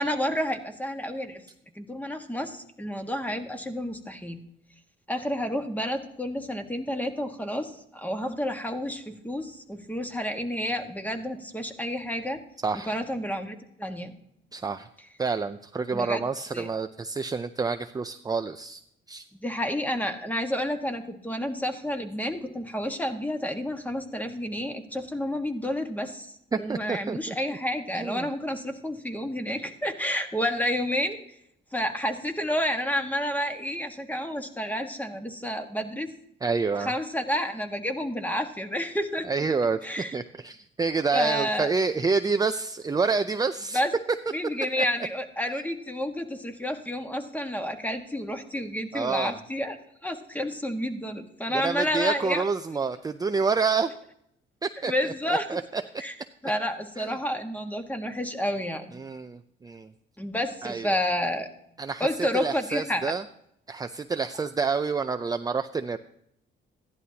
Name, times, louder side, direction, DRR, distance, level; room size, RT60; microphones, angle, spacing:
voice 1, 0.0-1.4 1.7-4.4 5.1-12.4 12.7-14.1 15.9-16.2 16.5-16.7 19.3-31.2 31.7-36.1 36.8-39.3 39.8-40.1 41.1-41.7 43.7-43.9 44.3-52.4 54.8-55.6 56.0-56.1 56.4-59.0 60.2-61.5 62.0-63.1, equal, 10° left, 5 dB, 1.5 m, -30 dB
voice 2, 12.6-13.0 14.5-14.9 15.2-18.8 19.1-19.2 26.5-27.6 27.9-28.3 36.4-36.9 39.3-39.8 40.1-43.8 44.8-44.9 48.9-49.4 51.5-53.9 54.6-55.8 57.0-57.1 58.9-59.9 60.6-61.0 61.8-63.2 63.7-66.0, right 4 dB, 20° right, 8 dB, 0.5 m, -28 dB
15.0 x 11.0 x 2.8 m, 0.74 s
cardioid pair, 90°, 20 cm